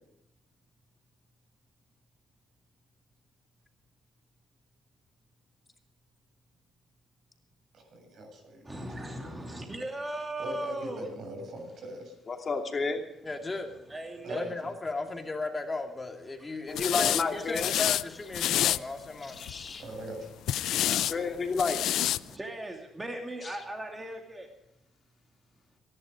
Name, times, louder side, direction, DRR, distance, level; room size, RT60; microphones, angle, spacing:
voice 1, 7.7-8.8 9.2-9.3 10.4-12.1 14.2-14.7 19.8-20.3, right 1 dB, 65° right, 4 dB, 7.5 m, -41 dB
voice 2, 8.6-11.1 13.9-14.5 16.4-16.7 20.6-21.1 22.2-24.5, right 1 dB, 20° right, 2 dB, 2.6 m, -38 dB
voice 3, 12.3-13.0 16.7-17.7 19.2-19.8 21.0-21.8 23.4-23.5, left 4 dB, 40° left, 3 dB, 2.8 m, -31 dB
voice 4, 13.2-13.7 14.3-19.4 20.9-21.0, left 3 dB, 25° left, 4 dB, 2.4 m, -36 dB
sound 1, 16.8-17.2 17.5-18.0 18.3-18.8 19.3-19.7 20.5-21.1 21.5-22.2, left 12 dB, 80° left, 0.5 m, -27 dB
23.5 x 11.0 x 5.3 m, 0.88 s
cardioid pair, 90°, 0 cm